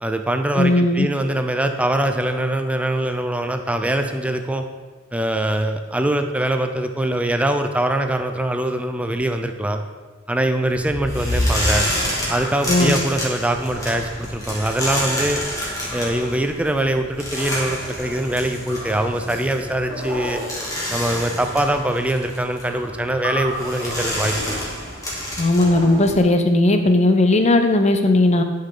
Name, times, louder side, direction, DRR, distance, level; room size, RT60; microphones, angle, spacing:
voice 1, 0.0-4.6 5.1-9.8 10.3-11.9 12.3-15.4 15.9-20.4 20.9-24.6, right 1 dB, 5° right, 6 dB, 0.5 m, -23 dB
voice 2, 0.5-1.1 12.7-13.0 25.4-28.4, left 2 dB, 35° left, 7 dB, 0.7 m, -16 dB
sound 1, 10.7-26.2, equal, 15° left, 1.8 m, -28 dB
10.0 x 5.5 x 3.8 m, 1.4 s
head